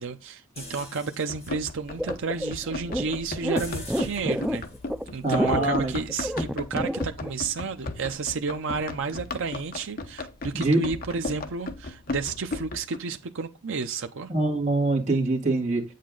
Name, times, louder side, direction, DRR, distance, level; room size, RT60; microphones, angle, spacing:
voice 1, 0.0-4.6 5.1-14.3, right 5 dB, 65° right, 0.7 m, -31 dB
sound 1, 0.6-6.4, left 2 dB, 30° left, 2.8 m, -45 dB
Run, 1.3-13.0, left 2 dB, 45° left, 1.0 m, -36 dB
sound 2, 2.0-7.3, equal, ahead, 0.4 m, -29 dB
voice 2, 5.2-5.9 10.5-10.8 14.3-15.8, right 2 dB, 35° right, 2.4 m, -24 dB
8.5 x 6.7 x 3.9 m
head